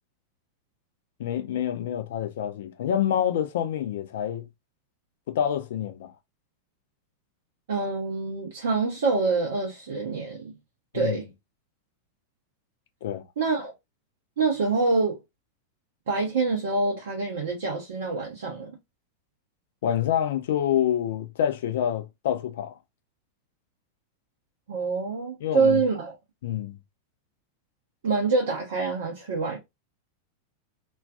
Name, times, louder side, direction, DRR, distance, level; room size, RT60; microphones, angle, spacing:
voice 1, 1.2-4.5 5.3-6.1 10.9-11.2 13.0-13.2 19.8-22.7 25.4-25.8 26.4-26.8, left 10 dB, 55° left, 0.5 m, -27 dB
voice 2, 7.7-10.4 10.9-11.3 13.4-13.7 14.4-15.2 16.1-18.7 24.7-26.2 28.0-29.6, right 4 dB, 60° right, 0.6 m, -26 dB
2.3 x 2.3 x 2.3 m
figure-of-eight pair, 90°, 0 cm